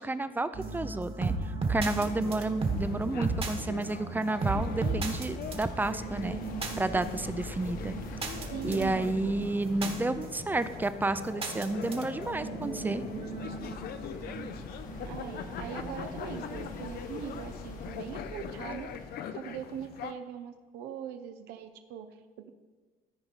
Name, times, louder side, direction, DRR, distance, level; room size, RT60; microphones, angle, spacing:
voice 1, 0.0-6.4 6.8-7.9 8.4-13.0, right 2 dB, 10° right, 12 dB, 0.4 m, -31 dB
sound 1, 0.5-16.9, right 3 dB, 35° right, 1.3 m, -36 dB
sound 2, 1.9-20.1, left 8 dB, 70° left, 0.6 m, -42 dB
sound 3, 4.5-19.1, left 2 dB, 50° left, 1.3 m, -45 dB
voice 2, 8.5-9.3 14.9-22.5, right 9 dB, 85° right, 7 dB, 0.6 m, -41 dB
13.5 x 4.6 x 4.1 m, 1.3 s
cardioid pair, 110°, 17 cm